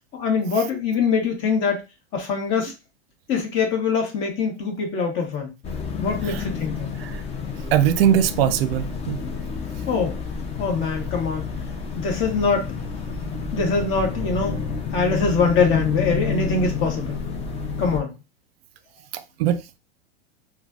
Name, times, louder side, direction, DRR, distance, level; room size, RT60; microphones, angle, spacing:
voice 1, 0.1-1.8 2.1-2.7 3.3-5.5 6.0-6.9 9.9-10.2 10.6-11.5 12.0-12.7 13.5-14.6 14.9-17.2 17.8-18.1, left 5 dB, 40° left, 1.1 m, -23 dB
sound 1, 5.6-18.0, left 5 dB, 20° left, 0.5 m, -29 dB
voice 2, 7.7-9.2 19.1-19.8, right 10 dB, 70° right, 0.5 m, -21 dB
3.1 x 2.2 x 2.4 m
hypercardioid pair, 105°, 31 cm